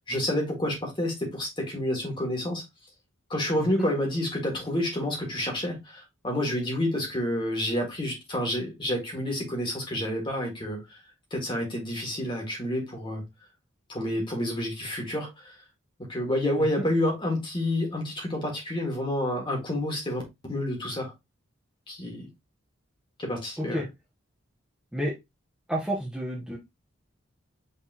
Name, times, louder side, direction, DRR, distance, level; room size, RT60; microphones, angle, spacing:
voice 1, 0.1-2.6 3.3-11.0 11.3-13.2 13.9-15.5 16.1-20.2 20.5-21.1 21.9-22.3 23.2-23.8, left 1 dB, 25° left, 1.7 m, -29 dB
voice 2, 3.6-3.9 16.6-16.9 23.6-23.9 24.9-25.1 25.7-26.6, equal, 5° right, 0.9 m, -30 dB
5.6 x 3.4 x 2.8 m
head